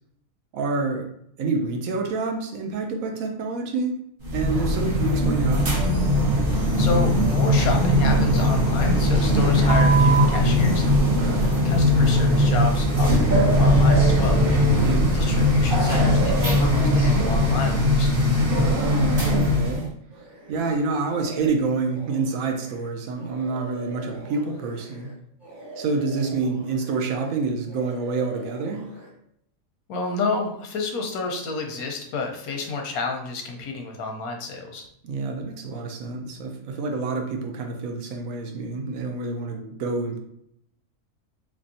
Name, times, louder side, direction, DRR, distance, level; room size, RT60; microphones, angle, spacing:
voice 1, 0.5-1.1 1.4-4.0 4.3-5.8 11.1-11.5 14.6-15.2 18.5-19.9 20.5-25.1 25.8-28.9 35.0-40.2, right 4 dB, 75° right, 4 dB, 1.0 m, -27 dB
sound 1, 4.2-19.8, equal, 45° right, 1.0 m, -19 dB
voice 2, 6.5-11.0 11.4-14.4 15.1-18.2 29.9-34.9, left 3 dB, 90° left, 3 dB, 1.2 m, -30 dB
sound 2, 17.2-18.1 18.5-25.1 25.4-27.4 27.7-29.1, right 1 dB, 20° right, 1.0 m, -42 dB
3.5 x 3.2 x 2.6 m, 0.72 s
omnidirectional pair, 1.5 m